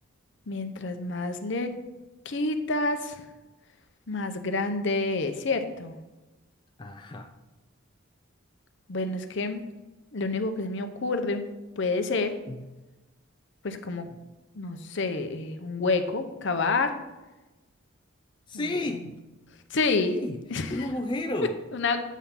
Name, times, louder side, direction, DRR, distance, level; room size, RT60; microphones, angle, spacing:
voice 1, 0.5-1.7 2.3-3.2 4.1-6.0 8.9-9.6 10.1-11.5 11.8-12.4 13.6-14.1 14.6-16.9 19.7-20.2 20.5-20.7 21.7-22.0, left 3 dB, 60° left, 8 dB, 0.7 m, -28 dB
voice 2, 6.8-7.3 12.5-12.7 18.5-19.2 20.0-21.6, left 1 dB, 20° left, 4 dB, 0.4 m, -32 dB
8.2 x 3.7 x 5.8 m, 1.1 s
head